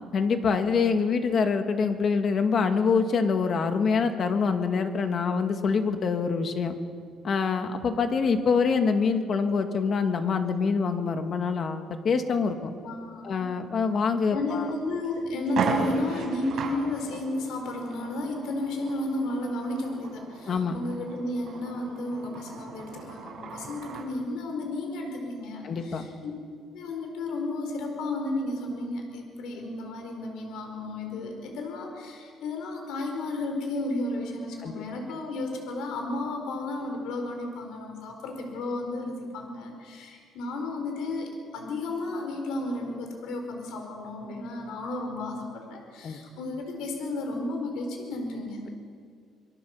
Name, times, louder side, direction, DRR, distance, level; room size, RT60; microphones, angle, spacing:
voice 1, 0.1-6.8 7.2-12.7 13.2-14.7 20.5-20.8 25.6-26.1 34.6-34.8 46.0-46.2, left 5 dB, 40° left, 6 dB, 2.0 m, -25 dB
voice 2, 12.8-13.5 14.3-26.3 26.7-48.6, left 2 dB, 85° left, 3 dB, 4.3 m, -33 dB
sound 1, 14.5-14.6 15.0-15.1 15.5-24.1, right 5 dB, 55° right, 5.6 m, -36 dB
26.0 x 23.5 x 7.2 m, 2.1 s
cardioid pair, 135°, 0 cm